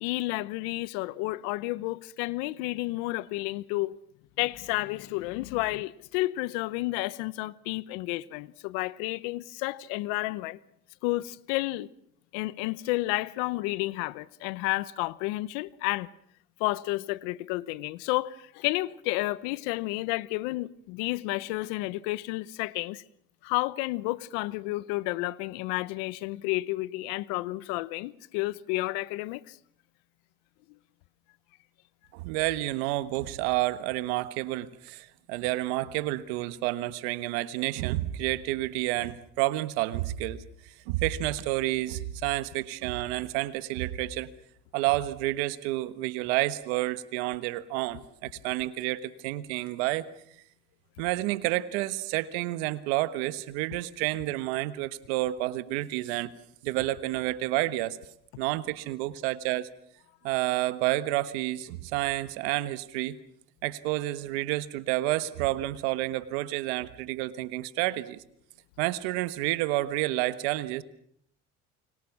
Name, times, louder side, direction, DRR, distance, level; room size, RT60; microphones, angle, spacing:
voice 1, 0.0-4.0 4.4-10.6 11.0-11.9 12.3-16.1 16.6-23.0 23.4-29.6, left 20 dB, 85° left, 1.0 m, -31 dB
voice 2, 32.1-44.3 44.7-50.1 51.0-56.3 56.6-58.0 58.4-59.7 60.2-63.2 63.6-68.2 68.8-70.8, right 17 dB, 85° right, 1.4 m, -30 dB
29.5 x 24.5 x 6.0 m
supercardioid pair, 80°, 31 cm